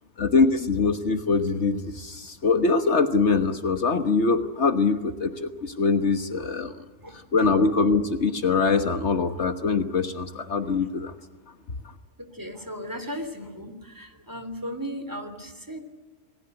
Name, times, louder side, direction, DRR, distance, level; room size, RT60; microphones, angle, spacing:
voice 1, 0.2-6.7 7.3-11.1, left 4 dB, 60° left, 9 dB, 1.6 m, -23 dB
voice 2, 6.7-7.5 12.2-15.8, equal, 15° right, 8 dB, 3.1 m, -37 dB
28.5 x 20.0 x 7.9 m, 1.2 s
omnidirectional pair, 1.3 m